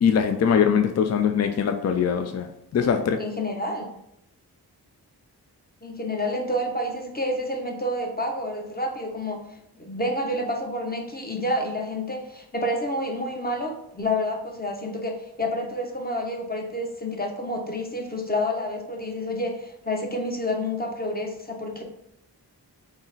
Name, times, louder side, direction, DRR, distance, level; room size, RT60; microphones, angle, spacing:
voice 1, 0.0-2.5 2.7-3.2, left 7 dB, 40° left, 6 dB, 0.4 m, -22 dB
voice 2, 2.9-3.9 5.8-9.4 9.8-21.8, left 1 dB, 25° left, 2 dB, 0.8 m, -29 dB
3.8 x 2.1 x 3.9 m, 0.78 s
cardioid pair, 40°, 39 cm